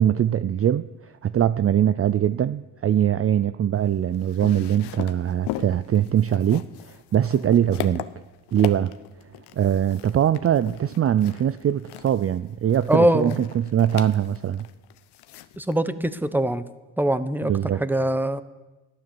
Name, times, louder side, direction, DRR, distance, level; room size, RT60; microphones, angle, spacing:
voice 1, 0.0-8.0 8.5-8.9 9.5-14.7 17.4-17.8, right 10 dB, 35° right, 15 dB, 0.5 m, -22 dB
sound 1, 3.8-15.8, left 13 dB, 75° left, 0.9 m, -38 dB
voice 2, 12.9-13.4 15.6-16.6 17.0-17.5 17.8-18.4, right 1 dB, 5° right, 13 dB, 1.1 m, -22 dB
15.0 x 11.5 x 7.2 m, 1.1 s
supercardioid pair, 65°, 40 cm